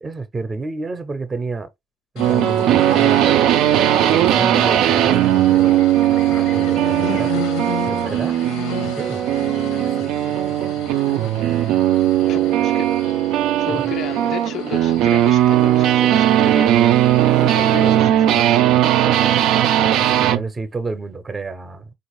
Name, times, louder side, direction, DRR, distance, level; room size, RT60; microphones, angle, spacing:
voice 1, 0.0-1.7 2.1-3.6 4.0-5.7 6.1-7.4 7.9-8.4 8.8-11.6 13.7-13.9 18.6-21.9, right 3 dB, 30° right, 0.6 m, -31 dB
sound 1, 2.2-18.0, left 6 dB, 90° left, 0.8 m, -34 dB
sound 2, 2.2-20.4, right 12 dB, 70° right, 0.3 m, -17 dB
voice 2, 12.3-12.9 13.6-16.9 17.2-18.5, left 9 dB, 60° left, 0.3 m, -33 dB
4.0 x 2.5 x 3.0 m
supercardioid pair, 80°, 0 cm